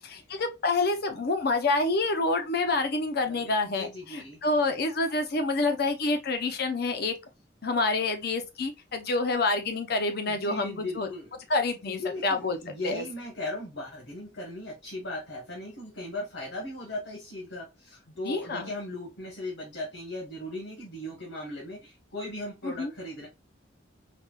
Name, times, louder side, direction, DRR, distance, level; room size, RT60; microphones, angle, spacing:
voice 1, 0.0-7.1 7.6-11.1 11.5-12.6 12.8-13.0 18.2-18.7 22.6-22.9, left 3 dB, 55° left, 0.6 m, -27 dB
voice 2, 3.3-4.4 10.3-11.3 11.8-23.3, left 1 dB, 75° left, 1.3 m, -38 dB
4.2 x 2.3 x 2.3 m
head